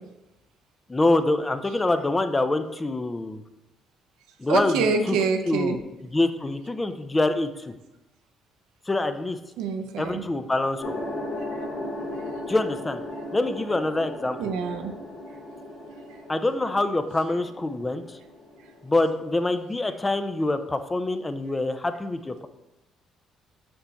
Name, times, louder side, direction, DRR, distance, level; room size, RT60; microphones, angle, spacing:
voice 1, 0.9-3.4 4.4-5.2 5.5-7.7 8.9-9.4 10.0-10.9 12.5-13.0 13.3-14.5 16.3-18.2 18.8-22.5, left 2 dB, 20° left, 9 dB, 0.6 m, -25 dB
voice 2, 4.5-5.8 9.6-10.2 14.4-14.9, right 5 dB, 85° right, 5 dB, 0.7 m, -25 dB
sound 1, 10.8-19.5, left 1 dB, 65° left, 2.2 m, -37 dB
6.6 x 4.4 x 4.1 m, 0.94 s
supercardioid pair, 70°, 0 cm